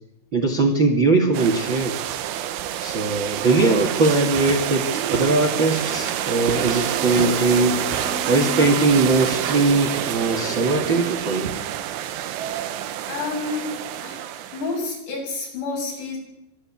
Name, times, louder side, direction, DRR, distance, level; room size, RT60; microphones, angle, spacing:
voice 1, 0.3-2.0 2.8-7.8 8.3-11.5, right 3 dB, 35° right, 2 dB, 2.0 m, -20 dB
sound 1, 1.3-14.9, right 11 dB, 90° right, 3.6 m, -28 dB
Walk footsteps / Chatter / Squeak, 3.4-11.0, right 6 dB, 60° right, 2.9 m, -31 dB
voice 2, 13.1-13.7 14.0-14.3 14.5-16.2, left 3 dB, 60° left, -1 dB, 9.7 m, -29 dB
25.0 x 12.5 x 8.7 m, 0.86 s
omnidirectional pair, 5.4 m